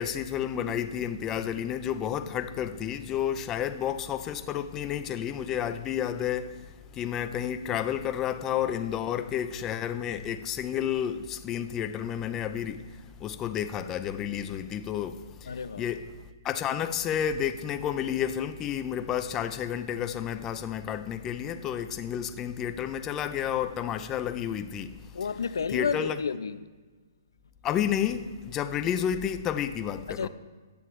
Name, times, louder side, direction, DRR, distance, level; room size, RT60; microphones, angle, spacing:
voice 1, 0.0-16.1 16.4-25.2 25.7-26.2 27.6-30.3, left 9 dB, 15° left, 0.6 m, -31 dB
voice 2, 15.5-15.9 25.1-26.7 30.2-30.3, left 6 dB, 90° left, 0.7 m, -31 dB
17.0 x 11.0 x 3.3 m
hypercardioid pair, 160°, 2 cm